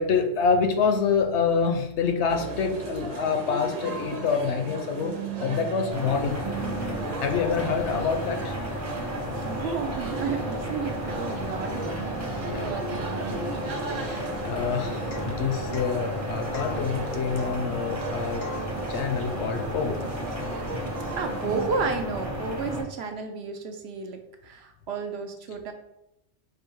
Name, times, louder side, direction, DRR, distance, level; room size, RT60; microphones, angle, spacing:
voice 1, 0.0-6.4 7.2-8.5 12.4-12.8 13.3-18.4 18.9-20.0, left 5 dB, 70° left, 5 dB, 0.8 m, -27 dB
sound 1, 2.3-21.7, right 4 dB, 80° right, 1.2 m, -36 dB
sound 2, 5.9-22.8, equal, 15° right, 0.7 m, -33 dB
voice 2, 9.2-12.0 12.5-13.8 21.1-25.7, right 5 dB, 65° right, 4 dB, 0.8 m, -32 dB
Domestic sounds home sounds / Chink clink / Drip, 15.1-15.4 15.7-16.0 16.5-16.8 17.4-17.6 18.4-18.7, left 4 dB, 85° left, 1.3 m, -41 dB
5.0 x 2.3 x 4.5 m, 0.83 s
omnidirectional pair, 1.3 m